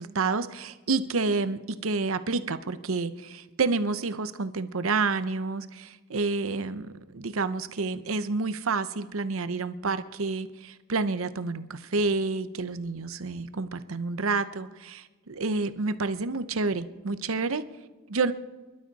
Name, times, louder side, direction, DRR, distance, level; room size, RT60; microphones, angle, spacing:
voice 1, 0.0-17.6 18.1-18.3, right 3 dB, 85° right, 12 dB, 0.8 m, -29 dB
24.5 x 12.0 x 4.2 m, 1.2 s
head